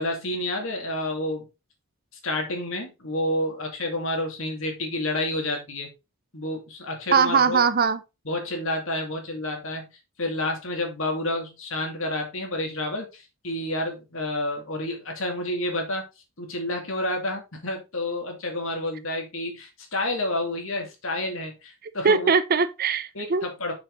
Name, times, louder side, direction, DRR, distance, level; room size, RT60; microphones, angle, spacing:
voice 1, 0.0-1.4 2.2-5.9 6.3-7.6 8.2-9.9 10.2-16.0 16.4-22.3 23.1-23.7, left 1 dB, 65° left, 2.4 m, -29 dB
voice 2, 7.1-8.0 22.0-23.5, right 5 dB, 45° right, 0.6 m, -21 dB
6.5 x 5.9 x 3.9 m
head